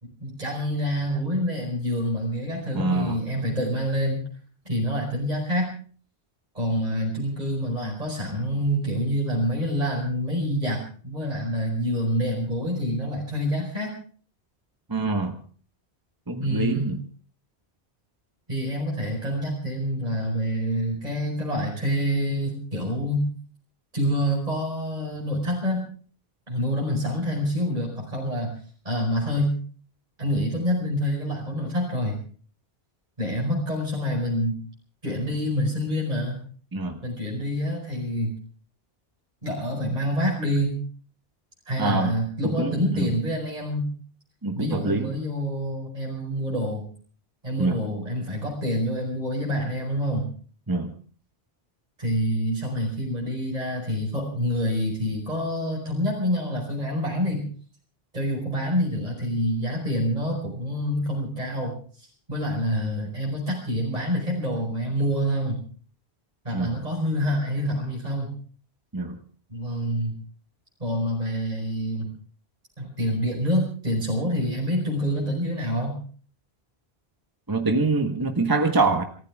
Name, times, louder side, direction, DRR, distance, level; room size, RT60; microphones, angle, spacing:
voice 1, 0.0-4.2 4.6-5.7 6.5-13.9 16.4-16.9 18.5-23.2 23.9-25.9 26.5-28.5 28.8-29.5 30.2-32.2 33.2-34.6 35.0-36.4 37.0-38.3 39.4-40.8 41.7-43.9 44.5-46.8 47.4-50.3 52.0-57.5 58.1-65.6 66.4-68.3 69.5-70.1 70.8-72.1 72.8-76.0, equal, 40° right, -2 dB, 5.1 m, -27 dB
voice 2, 2.7-3.2 14.9-15.4 16.3-17.0 36.7-37.0 41.8-42.2 42.6-43.2 44.4-45.1 47.6-47.8 50.7-50.9 66.5-66.8 68.9-69.2 77.5-79.0, right 3 dB, 20° right, 5 dB, 1.5 m, -25 dB
28.0 x 14.5 x 3.6 m, 0.43 s
omnidirectional pair, 1.1 m